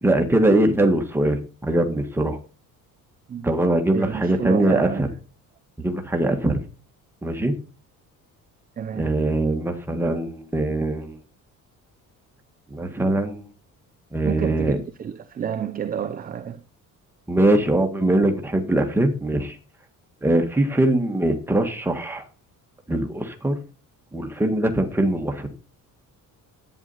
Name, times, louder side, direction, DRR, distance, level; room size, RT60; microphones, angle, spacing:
voice 1, 0.0-2.4 3.4-5.1 5.8-6.6 7.2-7.5 8.9-11.2 12.7-13.5 14.1-14.8 17.3-19.6 20.2-22.2 22.9-23.5 24.1-25.5, right 1 dB, 5° right, 1.5 m, -22 dB
voice 2, 0.5-0.9 3.3-3.5 3.9-5.0 8.8-9.1 14.2-16.6, right 8 dB, 25° right, 0.7 m, -30 dB
11.0 x 9.3 x 4.1 m
cardioid pair, 180°, 33 cm